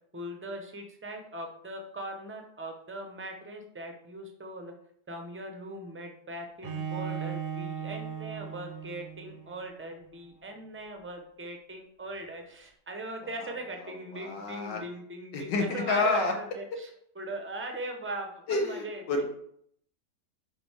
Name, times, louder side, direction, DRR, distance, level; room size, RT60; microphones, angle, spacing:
voice 1, 0.1-4.7 5.1-19.0, right 1 dB, 10° right, 3 dB, 0.5 m, -40 dB
Bowed string instrument, 6.6-9.6, right 7 dB, 45° right, 0.8 m, -37 dB
voice 2, 14.1-14.8 15.3-16.3 18.5-19.2, left 3 dB, 85° left, 3 dB, 1.9 m, -28 dB
11.0 x 4.0 x 3.5 m, 0.68 s
omnidirectional pair, 1.9 m